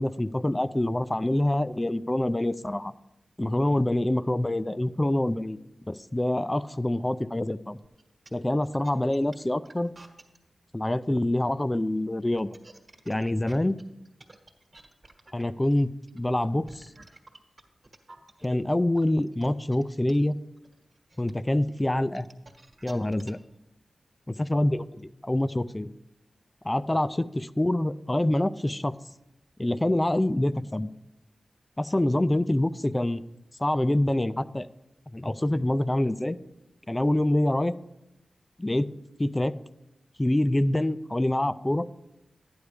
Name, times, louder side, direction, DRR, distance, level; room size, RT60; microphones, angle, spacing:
voice 1, 0.0-2.9 3.4-5.6 5.9-7.8 8.3-9.9 10.7-12.5 13.1-13.8 15.3-16.9 18.4-20.4 21.2-22.3 22.8-23.4 24.5-25.9 26.6-28.9 29.6-30.9 31.8-33.2 33.6-34.7 35.1-36.4 36.9-37.7 38.6-38.9 39.2-39.5 40.2-41.9, left 1 dB, 20° left, 15 dB, 0.4 m, -26 dB
sound 1, 7.8-10.4 12.2-18.4 18.9-23.5, right 2 dB, 45° right, 1.3 m, -52 dB
12.0 x 9.6 x 3.4 m, 0.92 s
cardioid pair, 60°, 0 cm